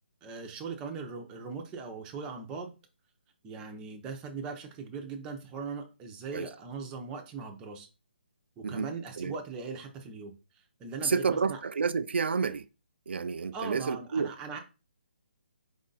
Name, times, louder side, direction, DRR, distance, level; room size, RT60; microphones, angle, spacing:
voice 1, 0.2-2.7 3.4-7.9 8.6-11.6 13.5-14.6, right 5 dB, 15° right, 0.6 m, -40 dB
voice 2, 11.0-12.7 13.1-14.3, right 5 dB, 85° right, 0.3 m, -30 dB
4.9 x 2.5 x 3.9 m
hypercardioid pair, 160°, 6 cm